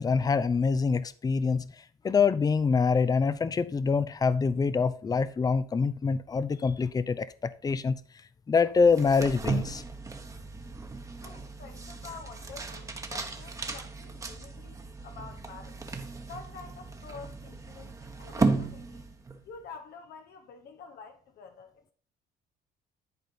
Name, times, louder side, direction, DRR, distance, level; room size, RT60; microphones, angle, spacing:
voice 1, 0.0-1.7 2.0-8.0 8.5-9.8, left 5 dB, 20° left, 0.6 m, -25 dB
sound 1, 8.9-19.4, right 3 dB, 20° right, 1.2 m, -35 dB
voice 2, 11.2-15.8 16.3-19.0 19.5-21.9, left 5 dB, 70° left, 1.1 m, -48 dB
11.0 x 4.3 x 5.5 m
cardioid pair, 110°, 17 cm